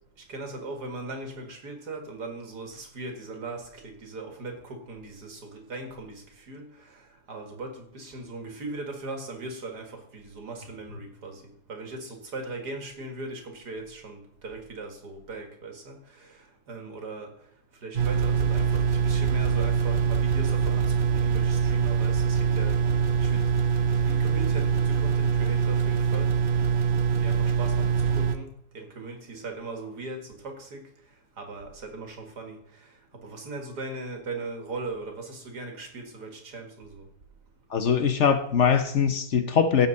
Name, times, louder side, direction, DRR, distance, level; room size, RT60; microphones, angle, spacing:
voice 1, 0.3-7.0 7.3-11.4 11.7-16.4 16.7-17.3 17.8-22.8 23.2-23.5 24.0-26.3 27.2-30.9 31.4-32.6 33.2-37.0, right 2 dB, 85° right, 2.5 m, -39 dB
sound 1, 17.9-28.3, right 6 dB, 45° right, 0.7 m, -24 dB
voice 2, 37.7-39.9, left 7 dB, 55° left, 0.9 m, -22 dB
16.5 x 7.0 x 4.1 m
omnidirectional pair, 1.7 m